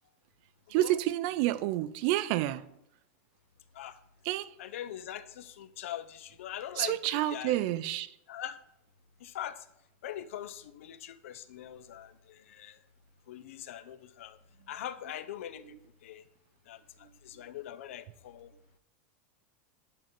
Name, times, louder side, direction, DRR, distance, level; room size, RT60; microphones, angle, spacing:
voice 1, 0.7-2.6 4.3-4.5 6.8-8.1, right 15 dB, 45° right, 15 dB, 0.4 m, -29 dB
voice 2, 4.6-7.8 8.3-8.6 9.2-9.6 10.0-12.8 13.3-14.4 14.7-15.6 16.0-16.2 16.7-16.8 17.2-18.5, left 11 dB, 80° left, 14 dB, 0.6 m, -42 dB
11.0 x 3.8 x 4.4 m, 0.78 s
supercardioid pair, 165°, 7 cm